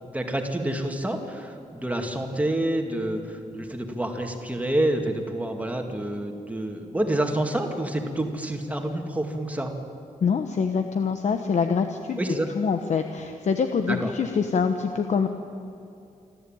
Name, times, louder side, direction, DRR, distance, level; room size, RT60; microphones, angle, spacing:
voice 1, 0.1-9.7 12.2-12.5 13.9-14.1, right 1 dB, 10° right, 3 dB, 2.1 m, -28 dB
voice 2, 10.2-12.2 12.6-15.3, left 6 dB, 60° left, 7 dB, 1.1 m, -25 dB
26.0 x 14.0 x 8.9 m, 2.6 s
wide cardioid pair, 150°, 14 cm